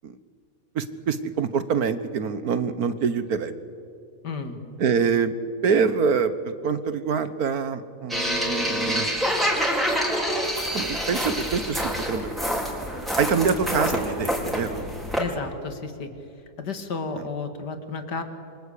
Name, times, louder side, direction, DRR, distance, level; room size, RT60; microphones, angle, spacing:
voice 1, 0.7-3.5 4.8-5.3 5.6-9.1 10.7-12.5 13.2-14.9 17.2-17.3, right 6 dB, 65° right, 12 dB, 1.6 m, -25 dB
voice 2, 4.2-4.6 15.2-16.1 16.6-18.2, left 4 dB, 85° left, 7 dB, 2.5 m, -32 dB
sound 1, 8.1-15.2, equal, ahead, 4.3 m, -26 dB
27.5 x 24.5 x 8.5 m, 2.4 s
omnidirectional pair, 1.7 m